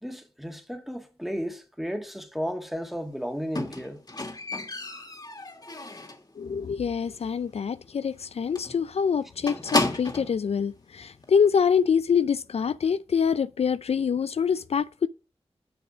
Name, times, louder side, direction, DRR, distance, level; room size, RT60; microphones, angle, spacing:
voice 1, 0.0-4.0, equal, ahead, 1.8 m, -33 dB
Squeak, 3.6-6.3 6.7-7.1 7.3-7.4 7.8-7.9 8.2-8.3 8.6-10.4 11.2-11.3, left 2 dB, 40° left, 2.0 m, -32 dB
voice 2, 6.4-15.1, left 6 dB, 70° left, 0.4 m, -25 dB
7.0 x 6.1 x 4.9 m
cardioid pair, 45°, 11 cm